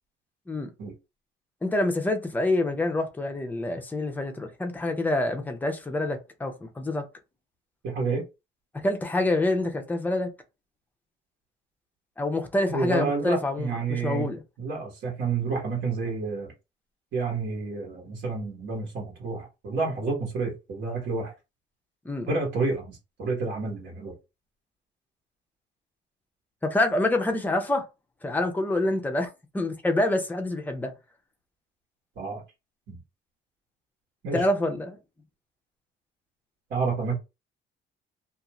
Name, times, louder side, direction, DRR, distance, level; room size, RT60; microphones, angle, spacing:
voice 1, 1.6-7.0 8.8-10.3 12.2-14.4 22.0-22.3 26.6-27.8 28.2-29.3 29.5-30.9 34.3-35.0, left 2 dB, 10° left, 0.5 m, -26 dB
voice 2, 7.8-8.2 12.7-14.3 14.6-16.5 17.1-21.3 22.3-24.1 32.2-32.4 32.9-33.0 34.2-34.5 36.7-37.2, right 4 dB, 65° right, 1.2 m, -29 dB
2.5 x 2.4 x 2.9 m
cardioid pair, 150°, 20 cm